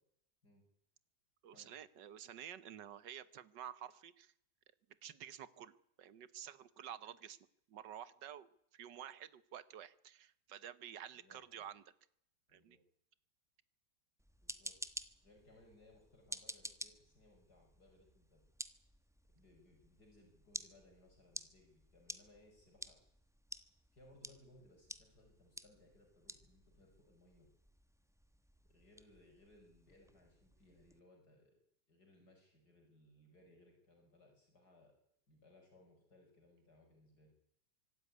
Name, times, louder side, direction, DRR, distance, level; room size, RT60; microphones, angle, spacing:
voice 1, 1.4-4.3 5.0-7.4 7.7-11.8 12.5-12.8, right 9 dB, 75° right, 16 dB, 1.7 m, -51 dB
voice 2, 11.2-11.7 12.5-12.8 14.4-14.8 15.2-18.4 19.3-23.0 23.9-27.5 28.6-31.5 31.9-34.9 35.3-37.3, left 1 dB, 60° left, 1 dB, 6.3 m, -65 dB
sound 1, 14.2-31.0, equal, ahead, 0.8 m, -52 dB
25.0 x 13.5 x 9.6 m, 0.72 s
omnidirectional pair, 1.9 m